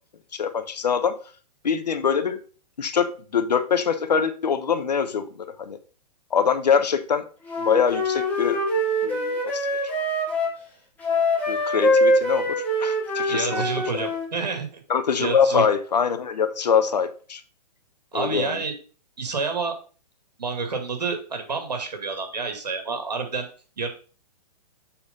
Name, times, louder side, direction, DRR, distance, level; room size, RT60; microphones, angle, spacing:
voice 1, 0.3-1.2 1.6-2.4 2.8-5.3 5.6-5.8 6.3-7.2 7.6-8.6 9.0-9.7 11.5-13.6 13.9-14.0 14.9-17.4 18.1-18.6, left 6 dB, 85° left, 1.2 m, -23 dB
Wind instrument woodwind instrument, 7.5-10.6 11.0-14.3, left 1 dB, 10° left, 2.2 m, -24 dB
voice 2, 13.3-14.8 15.2-15.6 18.1-18.7 19.2-19.8 20.4-23.5 23.8-23.9, right 4 dB, 85° right, 2.4 m, -29 dB
7.1 x 4.8 x 5.3 m
hypercardioid pair, 140°, 21 cm